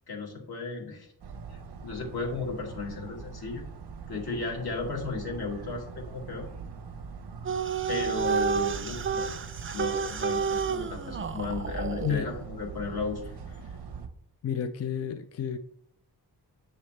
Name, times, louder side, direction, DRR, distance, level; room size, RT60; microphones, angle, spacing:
voice 1, 0.1-1.1 1.5-3.7 4.1-6.5 7.9-9.3 9.7-13.2, left 4 dB, 70° left, 2.4 m, -35 dB
sound 1, 1.2-14.1, right 5 dB, 90° right, 0.9 m, -42 dB
sound 2, 7.5-12.2, right 6 dB, 35° right, 0.5 m, -30 dB
voice 2, 14.4-15.6, left 8 dB, 40° left, 0.4 m, -31 dB
8.7 x 7.1 x 3.2 m
wide cardioid pair, 140°, 39 cm